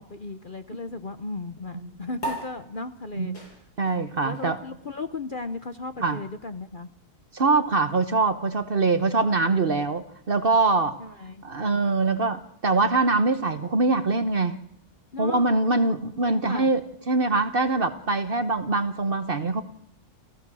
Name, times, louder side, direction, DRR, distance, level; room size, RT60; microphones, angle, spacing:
voice 1, 0.0-3.6 4.2-6.9 11.0-11.4 15.1-15.5 16.2-16.7, left 3 dB, 40° left, 10 dB, 0.9 m, -36 dB
sound 1, 2.2-9.0, right 1 dB, 90° left, 6.7 m, -42 dB
voice 2, 3.8-4.6 6.0-6.2 7.3-11.0 11.4-14.6 15.2-16.8 17.1-19.6, right 3 dB, 40° right, 11 dB, 1.1 m, -23 dB
29.0 x 14.5 x 6.2 m, 0.76 s
omnidirectional pair, 1.7 m